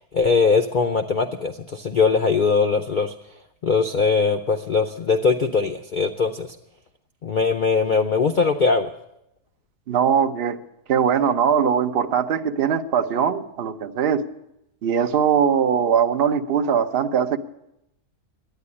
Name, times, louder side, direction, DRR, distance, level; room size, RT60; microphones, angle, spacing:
voice 1, 0.0-3.1 3.6-6.6 7.2-8.9, left 4 dB, 70° left, 5 dB, 0.4 m, -21 dB
voice 2, 9.9-10.6 10.9-14.2 14.8-17.4, right 7 dB, 50° right, 6 dB, 0.8 m, -21 dB
11.5 x 9.5 x 9.8 m, 0.84 s
omnidirectional pair, 1.7 m